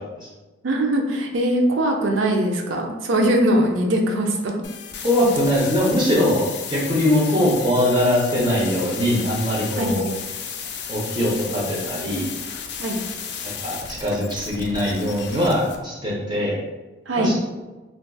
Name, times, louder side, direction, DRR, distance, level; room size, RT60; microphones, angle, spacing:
voice 1, 0.6-4.6 9.8-9.9 12.8-13.0 17.1-17.3, right 1 dB, 85° right, 2 dB, 0.5 m, -21 dB
sound 1, 4.6-15.8, left 7 dB, 60° left, 0.3 m, -34 dB
voice 2, 5.0-6.5 6.7-10.1 10.9-12.3 13.6-16.6 17.2-17.3, left 1 dB, 25° right, -4 dB, 0.6 m, -21 dB
3.9 x 2.3 x 2.3 m, 1.2 s
head